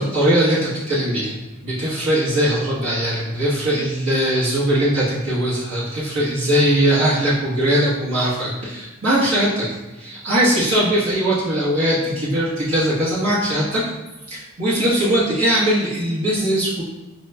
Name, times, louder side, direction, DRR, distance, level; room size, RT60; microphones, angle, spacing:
voice 1, 0.0-1.3 1.6-9.6 10.0-13.8 14.3-16.8, right 1 dB, 85° right, -8 dB, 1.1 m, -20 dB
4.8 x 2.9 x 2.2 m, 1.1 s
head